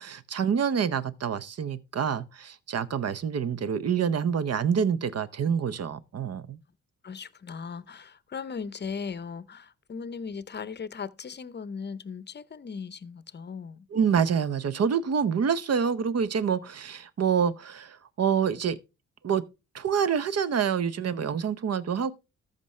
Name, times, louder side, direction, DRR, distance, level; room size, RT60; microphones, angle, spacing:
voice 1, 0.0-6.6 13.9-18.8 19.2-19.4 19.7-22.1, right 7 dB, 50° right, 0.8 m, -27 dB
voice 2, 7.0-13.9, left 5 dB, 30° left, 0.7 m, -38 dB
13.5 x 5.3 x 3.2 m
supercardioid pair, 50°, 33 cm